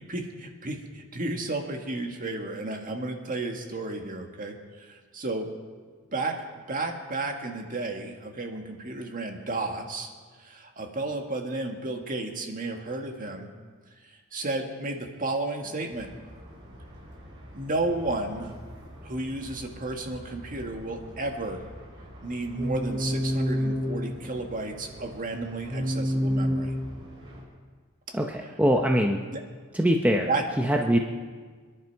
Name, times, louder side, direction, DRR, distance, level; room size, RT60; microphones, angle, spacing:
voice 1, 0.1-5.5 6.1-6.4 6.7-10.1 10.4-13.5 14.1-16.1 17.5-18.6 19.0-21.6 22.2-26.7 29.2-29.4 30.3-30.4, right 2 dB, 40° right, 3 dB, 1.8 m, -32 dB
sound 1, 15.9-27.4, equal, 55° right, 5.6 m, -33 dB
voice 2, 28.1-29.2 29.7-30.3 30.6-31.0, equal, 5° right, 2 dB, 0.8 m, -23 dB
26.5 x 11.0 x 4.7 m, 1.5 s
head